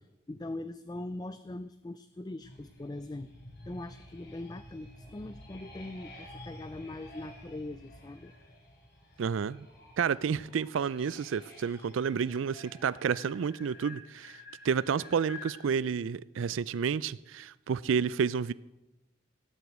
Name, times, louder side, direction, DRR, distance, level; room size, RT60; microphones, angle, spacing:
voice 1, 0.3-3.3 3.7-8.3, left 2 dB, 20° left, 0.4 m, -41 dB
sound 1, 2.4-15.7, left 2 dB, 55° left, 5.5 m, -51 dB
voice 2, 9.2-9.7 10.0-18.5, right 6 dB, 80° right, 0.4 m, -30 dB
17.5 x 7.9 x 8.1 m
head